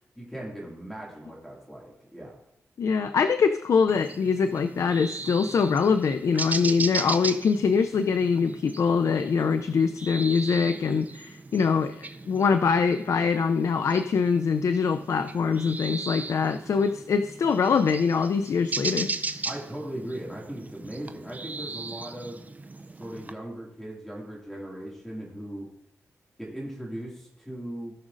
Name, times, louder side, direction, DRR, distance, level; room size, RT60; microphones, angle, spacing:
voice 1, 0.1-2.4 19.4-22.4 23.0-25.7 26.4-27.9, right 1 dB, 5° left, -4 dB, 2.2 m, -38 dB
voice 2, 2.8-19.1, left 5 dB, 70° left, 9 dB, 0.4 m, -24 dB
sound 1, 3.9-23.3, right 3 dB, 30° right, 0.5 m, -37 dB
18.0 x 6.2 x 2.6 m, 0.79 s
wide cardioid pair, 120°, 6 cm